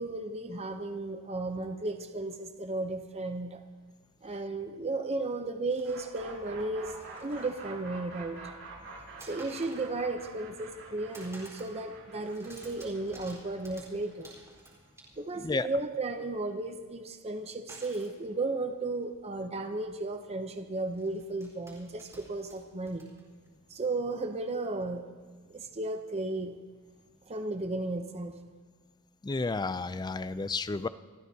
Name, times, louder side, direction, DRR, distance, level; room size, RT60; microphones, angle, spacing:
voice 1, 0.0-3.6 4.2-6.9 7.2-8.5 9.2-14.3 15.2-23.1 23.7-25.0 25.5-26.5 27.3-28.3, right 2 dB, 30° right, 6 dB, 0.7 m, -34 dB
sound 1, 5.7-6.2 6.7-7.7 8.0-8.5 9.2-9.9 10.3-10.8 11.1-11.8 12.0-15.4 17.7-18.2 19.1-19.2 19.5-19.7 20.8-23.5, right 1 dB, 15° right, 4.2 m, -53 dB
sound 2, 5.8-15.7, right 3 dB, 65° right, 5.0 m, -47 dB
voice 2, 29.2-30.9, left 3 dB, 20° left, 14 dB, 0.4 m, -31 dB
29.5 x 14.5 x 2.8 m, 1.5 s
head